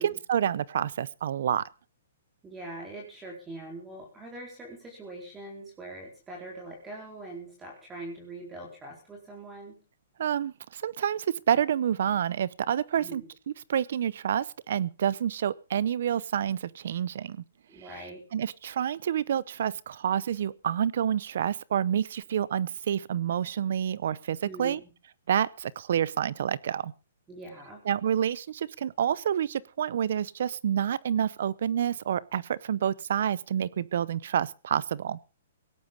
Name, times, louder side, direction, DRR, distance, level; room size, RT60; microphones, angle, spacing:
voice 1, 0.0-1.6 10.2-13.2 13.7-17.4 18.3-24.8 25.3-26.9 27.9-35.2, right 9 dB, 60° right, 21 dB, 0.7 m, -28 dB
voice 2, 2.4-9.8 12.9-13.3 17.7-18.2 24.4-24.9 27.3-27.8, right 2 dB, 10° right, 0 dB, 4.3 m, -42 dB
17.5 x 11.5 x 5.4 m, 0.34 s
hypercardioid pair, 155°, 0 cm